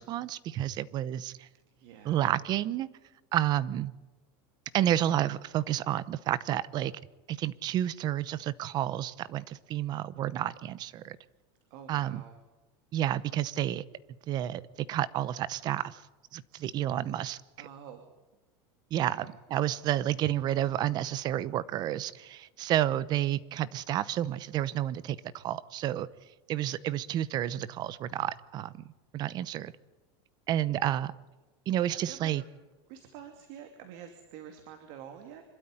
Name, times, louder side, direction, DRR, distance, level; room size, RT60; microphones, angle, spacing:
voice 1, 0.0-1.5 2.0-2.9 3.3-3.9 4.7-6.9 7.3-11.2 11.9-12.2 12.9-13.8 14.3-14.6 14.9-16.0 16.3-17.4 18.9-26.1 26.5-28.8 29.1-29.7 30.5-31.1 31.7-32.4, right 12 dB, 30° right, 0.9 m, -30 dB
voice 2, 1.8-2.3 4.8-4.9 11.7-12.3 17.6-18.1 19.0-19.3 31.9-32.4 32.9-35.4, right 9 dB, 55° right, 2.7 m, -48 dB
26.5 x 12.5 x 9.8 m
supercardioid pair, 165°, 13 cm